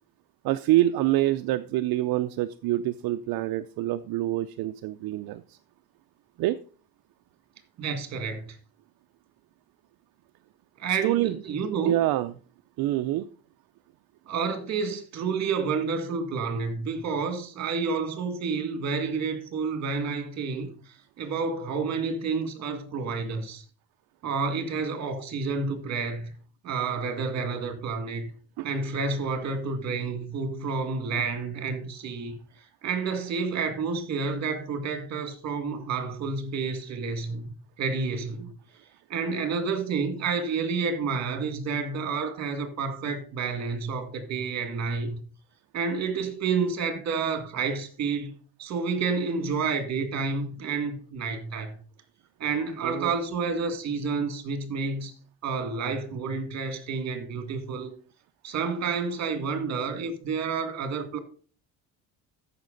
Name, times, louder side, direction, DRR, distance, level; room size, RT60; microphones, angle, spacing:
voice 1, 0.4-5.6 6.4-6.6 10.9-11.4 11.8-12.3 12.8-13.2 28.6-28.7 52.8-53.1, right 15 dB, 70° right, 0.6 m, -26 dB
voice 2, 7.8-8.6 10.8-11.9 14.3-20.7 21.2-23.6 24.2-26.3 26.6-28.3 28.6-32.4 32.8-37.4 37.8-38.5 39.1-45.2 45.7-48.3 48.6-51.8 52.4-55.1 55.4-57.9 58.4-61.2, right 5 dB, 45° right, 2.1 m, -29 dB
14.0 x 6.0 x 3.9 m
cardioid pair, 140°, 37 cm